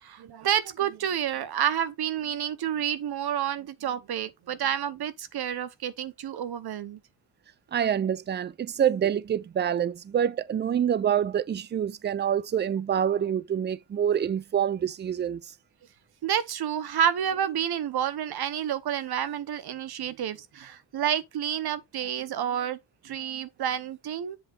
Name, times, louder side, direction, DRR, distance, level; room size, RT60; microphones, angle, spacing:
voice 1, 0.0-7.0 16.2-24.4, right 9 dB, 55° right, 1.0 m, -29 dB
voice 2, 7.7-15.4, right 9 dB, 25° right, 0.4 m, -26 dB
7.9 x 3.1 x 5.4 m
cardioid pair, 125°, 47 cm